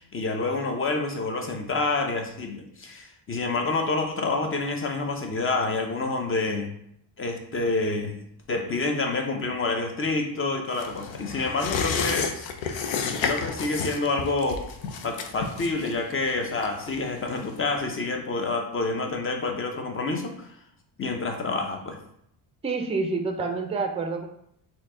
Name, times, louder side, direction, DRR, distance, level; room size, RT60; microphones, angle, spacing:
voice 1, 0.0-6.7 7.2-8.1 8.5-12.5 13.2-14.6 15.0-20.3 21.0-22.0, left 3 dB, 25° left, 3 dB, 0.7 m, -28 dB
sound 1, 10.7-17.8 18.1-18.2, left 5 dB, 70° left, 0.7 m, -32 dB
voice 2, 22.6-24.3, right 4 dB, 15° right, 4 dB, 0.5 m, -28 dB
4.3 x 2.9 x 3.7 m, 0.73 s
cardioid pair, 120°, 46 cm